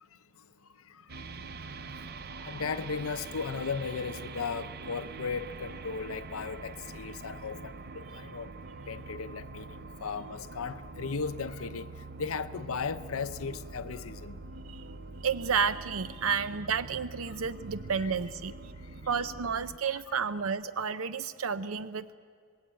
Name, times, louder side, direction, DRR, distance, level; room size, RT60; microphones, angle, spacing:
sound 1, 1.1-19.8, right 3 dB, 50° right, 0.8 m, -44 dB
voice 1, 2.4-8.5 8.9-11.9 12.2-14.4 16.2-16.4 17.3-17.4 18.0-18.1 19.2-19.3 20.1-20.3, left 5 dB, 85° left, 0.7 m, -36 dB
voice 2, 15.2-18.5 19.1-22.1, right 6 dB, 80° right, 0.6 m, -31 dB
27.0 x 19.5 x 8.9 m
head